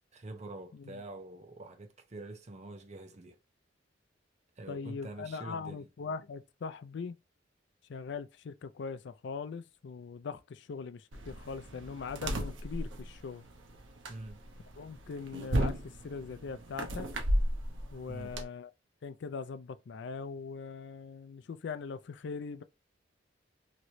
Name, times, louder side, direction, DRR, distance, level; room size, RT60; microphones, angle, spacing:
voice 1, 0.1-3.4 4.6-5.9 14.1-14.4 18.1-18.3, right 2 dB, 35° right, 0.7 m, -45 dB
voice 2, 4.7-7.2 7.9-13.4 14.8-17.1 17.9-18.7 19.0-22.6, left 5 dB, 65° left, 0.4 m, -41 dB
sound 1, 11.1-18.4, equal, 85° right, 0.8 m, -35 dB
3.0 x 3.0 x 2.6 m
head